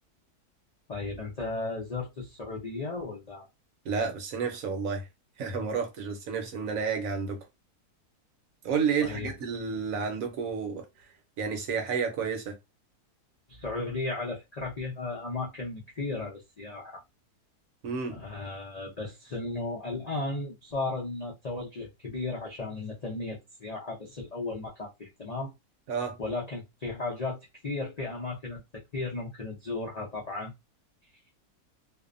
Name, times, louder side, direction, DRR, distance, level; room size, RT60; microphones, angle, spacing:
voice 1, 0.9-3.5 9.0-9.3 13.5-17.0 18.1-25.5 26.2-30.5, left 3 dB, 75° left, 0.3 m, -35 dB
voice 2, 3.8-5.1 5.4-7.4 8.6-10.8 11.4-12.5 17.8-18.2 25.9-26.2, right 5 dB, 65° right, 1.0 m, -30 dB
2.6 x 2.1 x 2.4 m
omnidirectional pair, 1.6 m